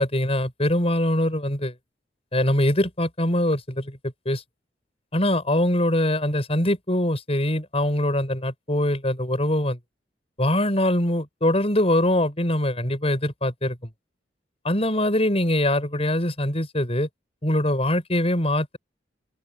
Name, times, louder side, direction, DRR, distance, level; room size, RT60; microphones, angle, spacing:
voice 1, 0.0-1.7 2.3-4.0 4.3-4.4 5.1-9.8 10.4-13.8 14.6-17.1 17.4-18.8, left 1 dB, 35° left, 7.0 m, -23 dB
open air
head